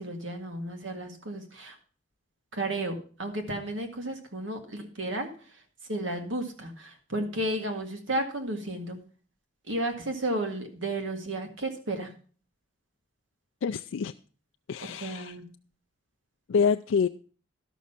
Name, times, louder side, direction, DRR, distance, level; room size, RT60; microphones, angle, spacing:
voice 1, 0.0-1.8 2.5-5.6 5.9-9.0 9.7-12.1 14.8-15.4, right 1 dB, 85° right, 2.0 m, -33 dB
voice 2, 13.6-14.1 14.7-15.4 16.5-17.1, left 6 dB, 90° left, 0.4 m, -26 dB
12.0 x 6.3 x 5.7 m
head